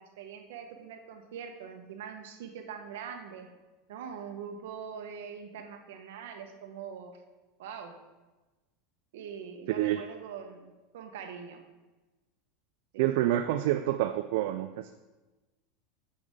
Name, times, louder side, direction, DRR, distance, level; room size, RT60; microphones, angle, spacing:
voice 1, 0.0-3.5 3.9-7.2 7.6-7.9 9.1-11.6 12.9-13.3, right 7 dB, 80° right, 5 dB, 1.1 m, -43 dB
voice 2, 9.7-10.0 13.0-14.9, right 13 dB, 65° right, 8 dB, 0.4 m, -28 dB
9.2 x 6.9 x 3.7 m, 1.2 s
supercardioid pair, 165°, 0 cm